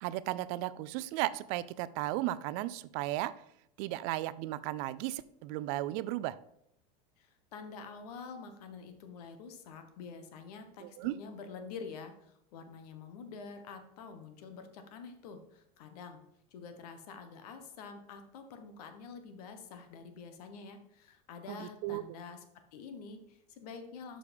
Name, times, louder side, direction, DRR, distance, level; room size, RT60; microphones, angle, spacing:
voice 1, 0.0-3.3 3.8-6.4 10.8-11.2 21.5-22.0, right 16 dB, 65° right, 16 dB, 0.5 m, -35 dB
voice 2, 7.2-16.2 16.5-22.4 22.7-24.2, left 5 dB, 80° left, 8 dB, 1.2 m, -47 dB
6.8 x 5.0 x 5.2 m, 0.77 s
supercardioid pair, 100°, 20 cm